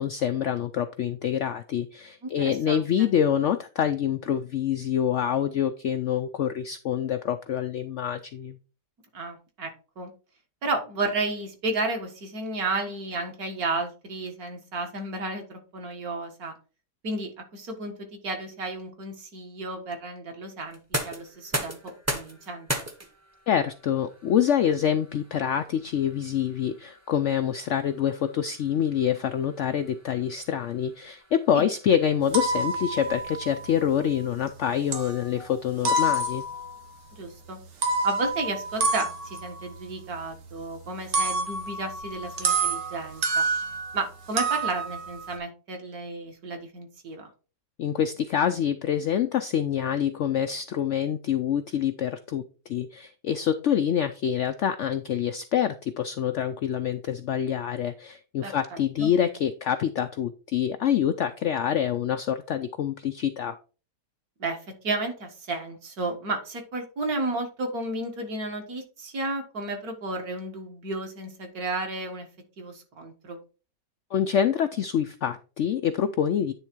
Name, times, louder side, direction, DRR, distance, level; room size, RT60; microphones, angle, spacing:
voice 1, 0.0-8.6 23.5-36.4 47.8-63.6 74.1-76.5, left 9 dB, 90° left, 10 dB, 0.6 m, -26 dB
voice 2, 2.2-3.1 9.1-10.1 10.6-16.5 17.0-22.7 31.5-31.7 37.1-37.6 38.0-43.5 43.9-47.3 58.4-59.1 64.4-72.3 72.6-73.4, right 2 dB, 60° right, 4 dB, 2.0 m, -33 dB
sound 1, 20.7-32.5, right 1 dB, 15° right, 0.7 m, -38 dB
sound 2, 32.2-34.6 34.9-35.4 35.9-36.8 37.6-44.0 44.4-45.4, right 2 dB, 85° right, 1.9 m, -28 dB
9.7 x 3.6 x 4.4 m, 0.35 s
omnidirectional pair, 1.8 m